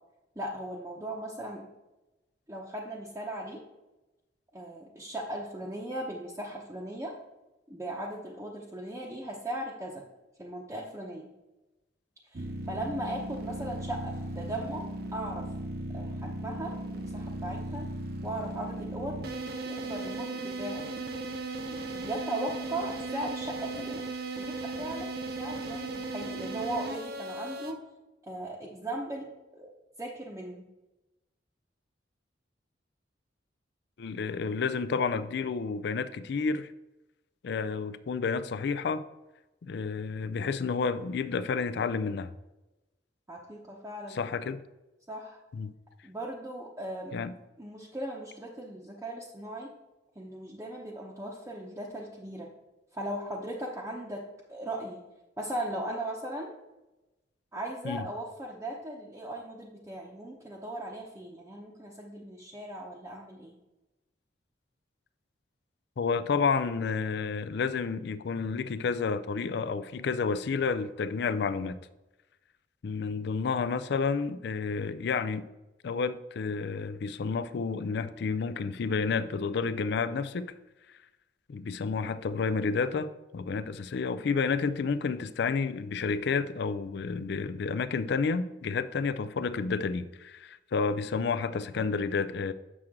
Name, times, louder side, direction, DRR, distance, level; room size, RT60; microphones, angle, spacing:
voice 1, 0.4-1.7 2.5-3.6 4.5-7.1 7.7-10.0 10.4-11.3 12.3-15.5 15.9-17.9 18.2-19.2 19.6-20.8 21.7-24.0 24.3-27.8 28.2-29.3 29.5-29.7 30.0-30.6 43.3-44.2 45.1-45.4 46.0-47.1 47.6-49.7 50.2-52.5 52.9-54.2 54.5-55.0 55.4-56.5 57.5-63.5, right 1 dB, 15° right, -3 dB, 0.8 m, -38 dB
sound 1, 12.3-27.7, right 2 dB, 55° right, 0.8 m, -37 dB
voice 2, 34.0-36.7 37.4-39.0 39.6-42.3 44.1-44.6 45.5-45.7 47.1-47.3 57.8-58.0 66.0-71.8 72.8-75.4 75.8-80.5 81.5-83.1 83.3-92.5, left 5 dB, 65° left, 14 dB, 0.4 m, -30 dB
7.7 x 6.1 x 3.6 m, 1.0 s
head